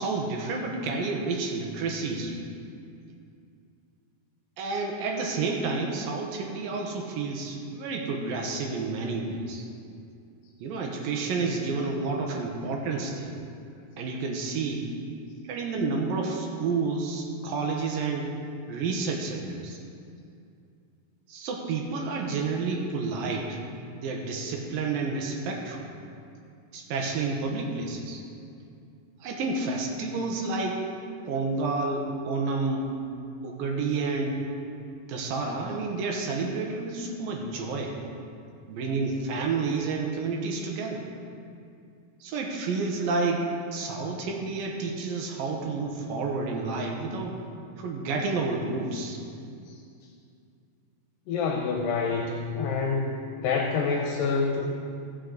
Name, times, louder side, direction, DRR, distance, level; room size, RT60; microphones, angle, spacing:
voice 1, 0.0-2.4 4.6-9.6 10.6-13.3 14.0-14.9 15.5-18.3 18.7-19.8 21.3-23.6 24.0-25.9 26.7-28.2 29.2-30.8 31.3-32.9 33.4-34.3 35.1-38.0 38.7-41.0 42.2-43.5 43.7-47.4 47.8-49.2, right 3 dB, 80° right, 1 dB, 2.7 m, -30 dB
voice 2, 51.3-54.7, left 4 dB, 75° left, 1 dB, 2.3 m, -27 dB
16.5 x 6.4 x 3.9 m, 2.4 s
omnidirectional pair, 4.1 m